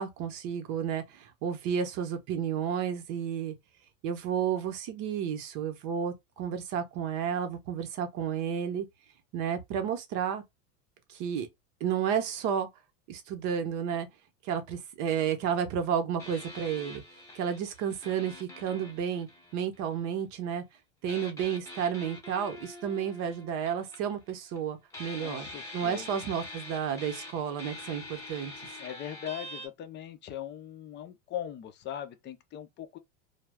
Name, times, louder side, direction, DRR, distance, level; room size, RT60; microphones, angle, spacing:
voice 1, 0.0-3.5 4.0-8.9 9.3-10.4 11.1-11.5 11.8-12.7 13.1-14.1 14.4-17.0 17.3-20.6 21.0-25.5 25.7-28.5, right 8 dB, 50° right, 0.8 m, -31 dB
sound 1, 16.2-20.1 21.1-24.6 24.9-29.7, left 1 dB, 10° left, 0.8 m, -45 dB
voice 2, 25.2-26.2 28.8-33.0, left 10 dB, 30° left, 0.4 m, -40 dB
2.2 x 2.0 x 3.4 m
supercardioid pair, 110°, 37 cm